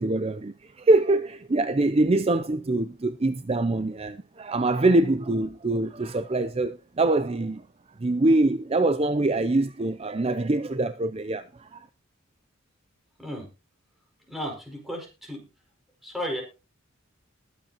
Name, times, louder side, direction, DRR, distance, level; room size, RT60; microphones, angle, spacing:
voice 1, 0.0-7.6 8.0-11.9, right 2 dB, 30° right, 0.5 m, -24 dB
voice 2, 13.2-13.5 14.3-15.5 16.0-16.4, equal, ahead, 5.5 m, -34 dB
20.5 x 8.3 x 2.9 m
head